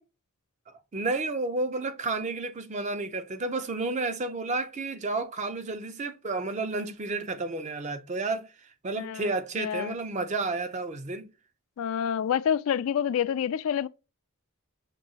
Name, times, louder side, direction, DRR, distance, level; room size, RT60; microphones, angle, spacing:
voice 1, 0.7-8.5 8.8-11.3, right 3 dB, 35° right, 0.5 m, -31 dB
voice 2, 9.0-9.9 11.8-13.9, left 8 dB, 75° left, 0.3 m, -28 dB
6.0 x 2.7 x 2.8 m
head